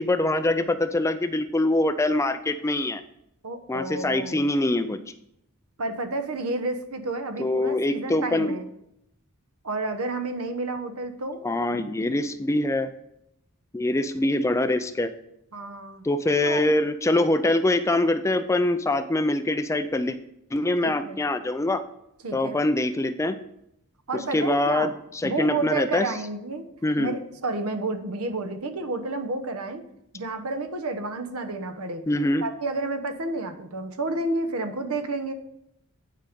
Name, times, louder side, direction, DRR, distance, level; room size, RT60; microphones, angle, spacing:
voice 1, 0.0-3.0 3.7-5.0 7.4-8.6 11.4-12.9 13.7-15.1 16.0-20.2 20.5-21.8 22.3-23.4 24.3-26.1 26.8-27.2 32.1-32.5, left 1 dB, 15° left, 11 dB, 0.4 m, -24 dB
voice 2, 3.4-4.5 5.8-8.7 9.6-11.4 15.5-16.0 16.4-16.8 20.8-21.2 22.2-22.6 24.1-24.9 25.2-26.7 27.0-29.8 30.1-32.0 32.4-35.3, right 2 dB, 70° right, 8 dB, 1.0 m, -30 dB
9.8 x 5.2 x 5.1 m, 0.78 s
head